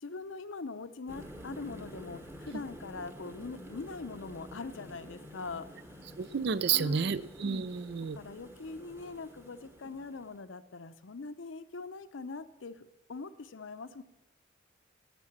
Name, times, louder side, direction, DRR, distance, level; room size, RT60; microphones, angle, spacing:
voice 1, 0.0-6.0 6.7-7.2 8.1-14.0, left 4 dB, 80° left, 12 dB, 0.7 m, -42 dB
sound 1, 1.1-10.4, equal, 15° right, 1.1 m, -49 dB
voice 2, 6.2-8.2, right 6 dB, 60° right, 17 dB, 0.4 m, -30 dB
11.5 x 8.1 x 7.2 m, 1.0 s
head